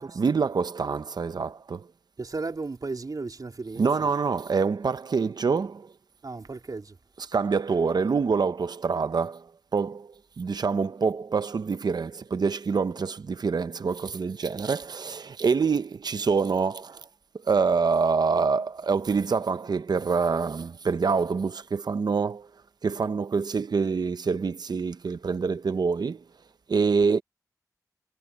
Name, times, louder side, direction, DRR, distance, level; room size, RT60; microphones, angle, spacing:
voice 1, 0.0-1.9 3.8-5.9 7.3-17.1 17.3-22.5 22.8-26.2 26.7-27.2, right 5 dB, 85° right, 0.8 m, -26 dB
voice 2, 2.2-3.9 6.2-7.0, right 3 dB, 65° right, 3.9 m, -34 dB
wide cardioid pair, 55°, 7 cm